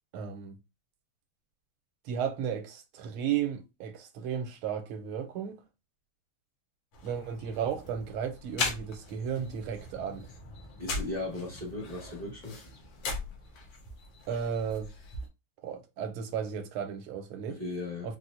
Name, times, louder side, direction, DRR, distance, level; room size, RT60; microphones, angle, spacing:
voice 1, 0.1-0.6 2.0-5.6 7.0-10.3 14.3-14.9 15.6-17.6 18.0-18.2, right 8 dB, 80° right, 1.5 m, -34 dB
sound 1, 6.9-15.3, left 3 dB, 65° left, 1.5 m, -39 dB
voice 2, 10.8-12.6 17.5-18.2, left 2 dB, 35° right, 0.6 m, -37 dB
4.4 x 2.1 x 2.5 m
omnidirectional pair, 2.4 m